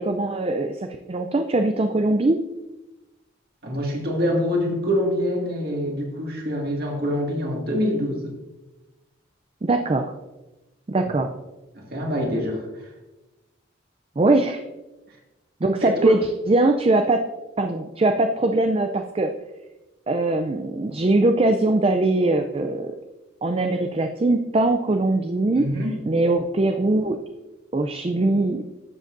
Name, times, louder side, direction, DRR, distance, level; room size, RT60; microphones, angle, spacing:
voice 1, 0.0-2.4 9.6-10.1 10.9-11.3 14.2-14.6 15.6-17.2 17.6-19.3 20.1-22.9 23.4-25.6 26.1-27.2 27.7-28.6, right 2 dB, 30° right, 6 dB, 0.4 m, -21 dB
voice 2, 3.6-8.3 11.8-12.6 16.0-16.1 25.6-26.0, equal, 50° right, -1 dB, 2.0 m, -25 dB
12.0 x 7.5 x 2.6 m, 1.0 s
head